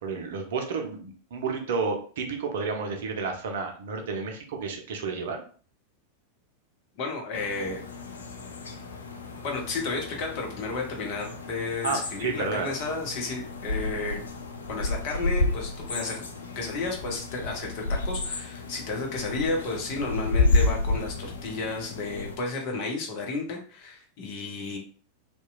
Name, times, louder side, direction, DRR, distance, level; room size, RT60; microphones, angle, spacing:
voice 1, 0.0-5.4 11.8-12.7, right 4 dB, 55° right, 3 dB, 0.5 m, -31 dB
voice 2, 7.0-7.8 9.4-14.2 14.7-16.3 16.6-24.8, left 3 dB, 45° left, 1 dB, 0.7 m, -32 dB
Fall Birds, 7.3-22.4, left 2 dB, 70° left, 0.3 m, -31 dB
2.8 x 2.2 x 2.3 m, 0.43 s
figure-of-eight pair, 90°, 0 cm